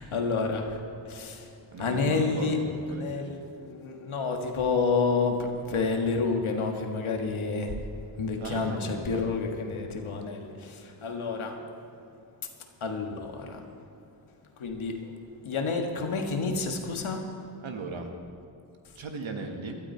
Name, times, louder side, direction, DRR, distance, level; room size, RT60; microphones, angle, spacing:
voice 1, 0.0-1.5 1.8-2.6 2.9-7.8 8.2-11.6 12.8-13.6 14.6-15.1 15.4-17.3, left 4 dB, 85° left, 3 dB, 1.7 m, -29 dB
voice 2, 1.7-3.3 8.4-9.2 17.6-18.1 18.9-19.8, right 3 dB, 75° right, 3 dB, 1.7 m, -37 dB
17.5 x 12.5 x 4.5 m, 2.6 s
cardioid pair, 80°, 48 cm